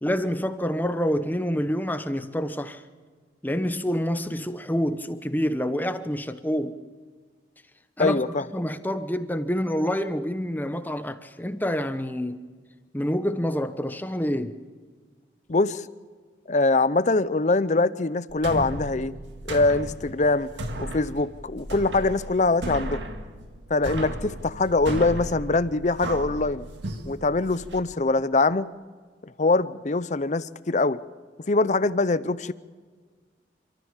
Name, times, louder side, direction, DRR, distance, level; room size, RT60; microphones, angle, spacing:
voice 1, 0.0-2.8 3.4-6.8 8.0-8.2 8.5-12.4 12.9-14.6, equal, 10° left, 0.9 m, -27 dB
voice 2, 8.0-8.5 15.5-15.9 16.5-19.1 19.5-20.5 20.8-23.0 23.7-26.7 27.1-28.7 29.4-31.0 31.5-32.5, left 3 dB, 40° left, 0.6 m, -23 dB
sound 1, 18.3-27.8, right 1 dB, 85° right, 1.9 m, -35 dB
27.0 x 14.0 x 7.3 m
head